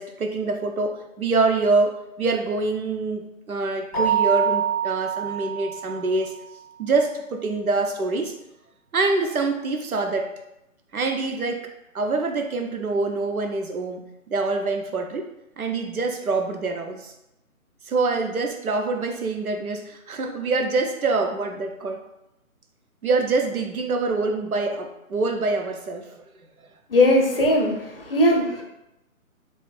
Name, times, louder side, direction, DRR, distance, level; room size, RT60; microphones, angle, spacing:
voice 1, 0.0-6.3 6.8-8.3 8.9-10.3 10.9-15.3 15.6-17.1 17.9-22.0 23.0-26.2 27.4-27.5, right 3 dB, 85° right, 4 dB, 0.7 m, -25 dB
Keyboard (musical), 3.9-6.4, right 8 dB, 5° right, 0.6 m, -25 dB
voice 2, 26.9-28.6, left 1 dB, 40° left, 1 dB, 0.6 m, -19 dB
3.3 x 2.5 x 3.1 m, 0.90 s
figure-of-eight pair, 150°, 42 cm